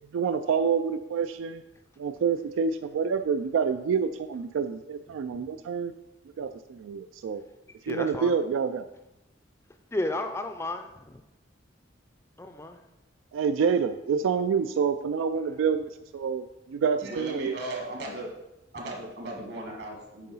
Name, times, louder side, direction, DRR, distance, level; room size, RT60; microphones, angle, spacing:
voice 1, 0.1-1.6 2.0-5.9 6.4-7.4 7.8-8.8 13.3-17.6, right 6 dB, 90° right, 10 dB, 0.3 m, -27 dB
voice 2, 7.9-8.3 9.9-11.2 12.4-12.8, left 1 dB, 15° left, 6 dB, 0.3 m, -32 dB
voice 3, 17.0-18.3 18.7-20.3, right 1 dB, 60° right, 0 dB, 1.6 m, -36 dB
8.4 x 3.7 x 5.5 m, 0.95 s
head